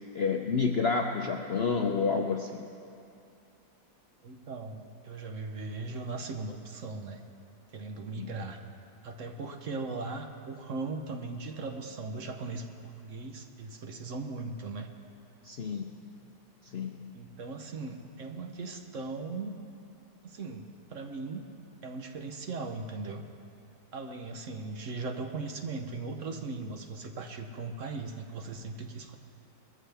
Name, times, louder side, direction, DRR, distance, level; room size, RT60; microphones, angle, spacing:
voice 1, 0.1-2.6 8.2-8.3 15.4-15.9 16.6-17.1, left 5 dB, 60° left, 3 dB, 0.6 m, -29 dB
voice 2, 4.2-7.2 7.7-8.6 9.0-14.9 17.1-19.6 20.2-21.4 21.8-23.2 23.9-29.2, right 3 dB, 55° right, 4 dB, 1.1 m, -38 dB
22.0 x 13.5 x 3.4 m, 2.6 s
omnidirectional pair, 1.8 m